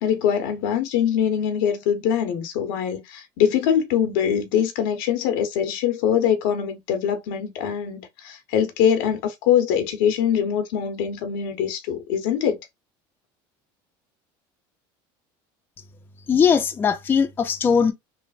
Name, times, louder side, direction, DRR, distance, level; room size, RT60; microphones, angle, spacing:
voice 1, 0.0-12.6, left 8 dB, 85° left, 0.9 m, -23 dB
voice 2, 16.3-17.9, left 6 dB, 20° left, 0.4 m, -19 dB
3.2 x 2.0 x 2.3 m
cardioid pair, 150°, 11 cm